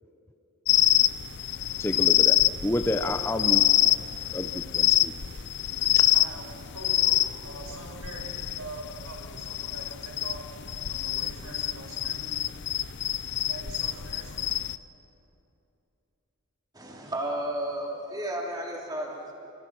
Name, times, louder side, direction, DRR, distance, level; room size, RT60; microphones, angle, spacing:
sound 1, 0.7-14.8, left 13 dB, 55° left, 0.6 m, -26 dB
voice 1, 1.8-3.6 4.3-5.1 5.9-6.1, left 1 dB, 10° left, 8 dB, 0.6 m, -30 dB
voice 2, 5.1-6.5 6.7-10.4 10.9-12.4 13.5-14.5, right 2 dB, 80° right, -1 dB, 6.5 m, -44 dB
voice 3, 16.7-19.3, right 1 dB, 20° right, -2 dB, 3.3 m, -33 dB
30.0 x 24.5 x 6.2 m, 2.8 s
head